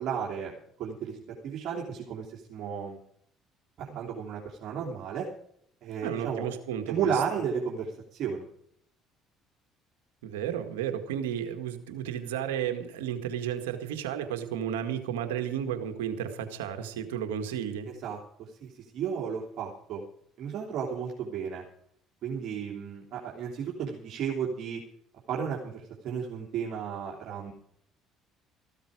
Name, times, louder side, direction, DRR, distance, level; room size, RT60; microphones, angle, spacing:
voice 1, 0.0-3.0 3.8-5.3 5.8-6.5 6.9-8.4 18.0-20.0 20.4-21.6 22.2-24.8 25.3-27.5, right 7 dB, 60° right, -3 dB, 3.1 m, -33 dB
voice 2, 6.0-7.2 10.2-17.9, right 9 dB, 90° right, 6 dB, 1.9 m, -33 dB
15.0 x 13.0 x 5.0 m, 0.67 s
hypercardioid pair, 65°, 0 cm